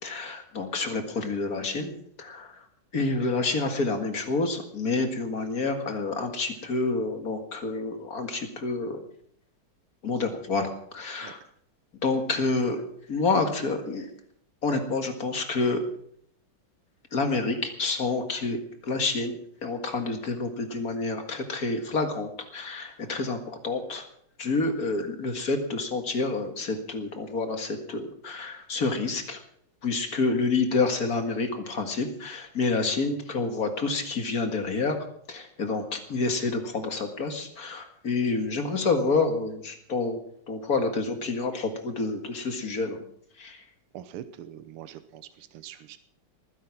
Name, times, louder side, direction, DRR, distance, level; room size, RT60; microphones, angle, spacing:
voice 1, 0.0-2.6 2.9-9.1 10.0-11.4 12.0-12.8 13.1-14.1 14.6-15.8 17.1-24.0 24.4-29.4 29.8-35.0 35.3-40.2 40.5-43.0 43.4-43.6, left 3 dB, 45° left, 6 dB, 2.2 m, -28 dB
voice 2, 43.9-45.2 45.6-46.0, right 11 dB, 80° right, 11 dB, 1.8 m, -42 dB
19.5 x 10.0 x 6.0 m, 0.67 s
omnidirectional pair, 2.4 m